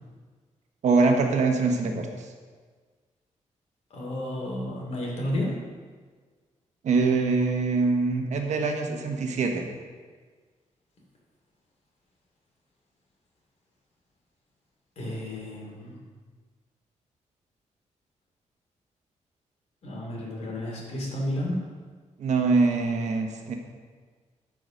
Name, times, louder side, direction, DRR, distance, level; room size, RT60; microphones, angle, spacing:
voice 1, 0.8-2.3 6.8-9.7 22.2-23.5, right 4 dB, 70° right, 3 dB, 1.2 m, -24 dB
voice 2, 3.9-5.5 15.0-16.0 19.8-21.6, left 1 dB, 60° left, -2 dB, 2.7 m, -31 dB
12.5 x 4.9 x 5.1 m, 1.5 s
wide cardioid pair, 145°, 13 cm